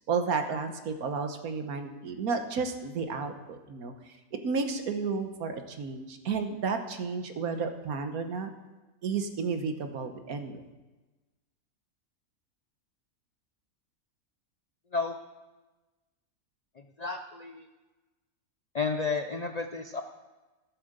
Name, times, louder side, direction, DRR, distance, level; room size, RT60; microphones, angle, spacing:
voice 1, 0.1-8.5 9.0-10.6, right 5 dB, 70° right, 7 dB, 1.5 m, -32 dB
voice 2, 17.0-17.6 18.7-20.0, left 4 dB, 60° left, 6 dB, 0.4 m, -31 dB
13.5 x 7.7 x 6.6 m, 1.2 s
omnidirectional pair, 1.6 m